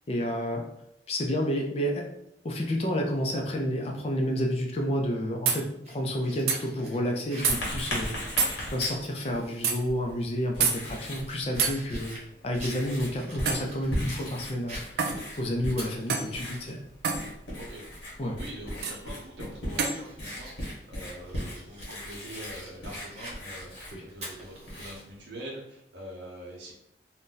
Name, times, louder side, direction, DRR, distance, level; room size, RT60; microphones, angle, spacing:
voice 1, 0.1-0.6 1.1-2.1 2.4-8.1 8.7-12.1 12.4-15.0 15.4-16.8 18.2-18.4 23.9-24.0, equal, 35° left, 1 dB, 0.4 m, -30 dB
sound 1, 5.5-5.6 6.5-6.6 7.4-7.6 8.4-8.6 9.6-9.8 10.6-10.8 11.6-11.8 13.5-13.7 15.0-15.2 16.1-16.3 17.0-17.2 18.8-19.0 19.8-20.0, right 5 dB, 60° right, 0.4 m, -26 dB
Fire, 5.8-9.7 10.1-10.2 10.7-14.3 14.7-16.7 17.1-17.2 18.7-19.0 19.4-25.0, right 1 dB, 35° right, 0.9 m, -46 dB
Writing, 7.4-25.2, equal, 85° left, 1.1 m, -39 dB
voice 2, 18.2-26.7, right 1 dB, 85° right, -4 dB, 0.8 m, -44 dB
2.6 x 2.1 x 3.7 m, 0.79 s
head